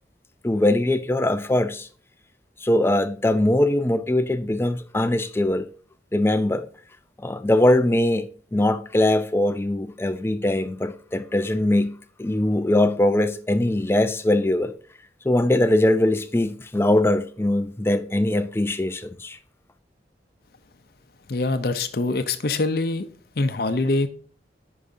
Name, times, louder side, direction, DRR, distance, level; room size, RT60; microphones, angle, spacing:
voice 1, 0.4-1.9 2.6-5.7 6.1-6.7 7.2-8.3 8.5-11.9 12.2-14.7 15.2-19.4, left 1 dB, 15° left, 0.4 m, -21 dB
voice 2, 21.3-23.1 23.4-24.1, left 2 dB, 60° left, 0.6 m, -24 dB
10.5 x 4.8 x 2.7 m
head